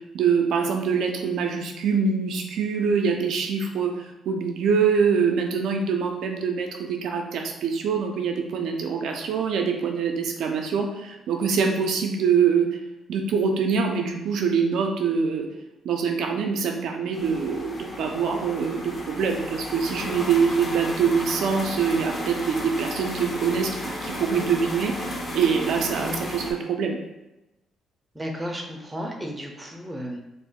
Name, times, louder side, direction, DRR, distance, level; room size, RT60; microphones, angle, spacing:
voice 1, 0.1-3.9 4.3-12.8 13.1-15.5 15.8-27.0, right 6 dB, 75° right, 3 dB, 0.4 m, -24 dB
sound 1, 17.1-26.5, left 1 dB, 35° left, 0.7 m, -33 dB
voice 2, 28.1-30.2, equal, 15° right, 1 dB, 0.5 m, -33 dB
2.5 x 2.1 x 3.6 m, 0.96 s
cardioid pair, 90°, 0 cm